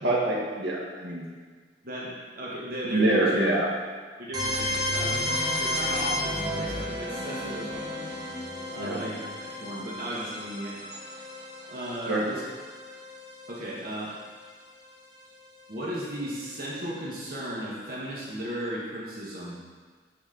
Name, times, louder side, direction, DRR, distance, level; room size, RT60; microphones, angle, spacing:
voice 1, 0.0-1.3 2.9-3.7 8.8-9.0 12.1-12.3, right 2 dB, 70° right, -4 dB, 1.5 m, -25 dB
voice 2, 1.8-3.4 4.2-5.3 5.6-7.9 8.7-10.8 11.7-12.4 13.5-14.1 15.7-19.6, right 1 dB, 50° right, -5 dB, 1.2 m, -35 dB
sound 1, 4.3-14.1, left 1 dB, 20° right, 1.3 m, -32 dB
9.7 x 4.2 x 3.9 m, 1.5 s
head